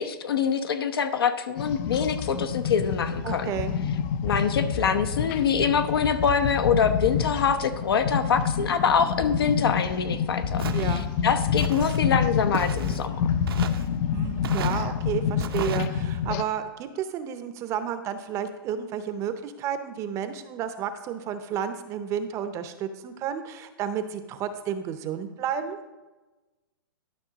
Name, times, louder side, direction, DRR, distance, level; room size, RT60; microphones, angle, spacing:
voice 1, 0.0-3.5 4.2-13.2, left 6 dB, 80° left, 10 dB, 0.8 m, -25 dB
sound 1, 1.6-16.4, left 7 dB, 30° left, 0.4 m, -28 dB
voice 2, 3.2-3.8 10.7-11.1 14.1-25.8, right 8 dB, 25° right, 10 dB, 0.6 m, -31 dB
Walk footsteps, 10.6-11.0 11.6-12.0 12.5-13.1 13.5-13.9 14.4-14.8 15.4-15.9, right 8 dB, 80° right, 0.7 m, -36 dB
11.5 x 5.4 x 3.9 m, 1.2 s
hypercardioid pair, 145°, 12 cm